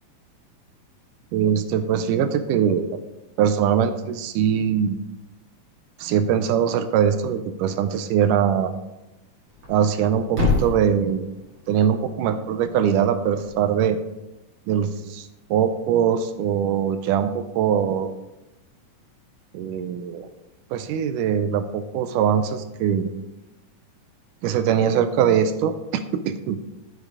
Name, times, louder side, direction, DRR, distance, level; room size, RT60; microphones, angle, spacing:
voice 1, 1.3-3.0 3.4-5.0 6.0-8.7 9.7-11.3 11.7-14.0 14.7-18.1 19.5-20.3 20.7-23.1 24.4-25.7 26.1-26.6, right 8 dB, 80° right, 10 dB, 2.1 m, -22 dB
Thump thud, 9.5-13.6, left 3 dB, 40° right, 2.5 m, -29 dB
9.7 x 6.8 x 4.7 m, 1.0 s
omnidirectional pair, 3.8 m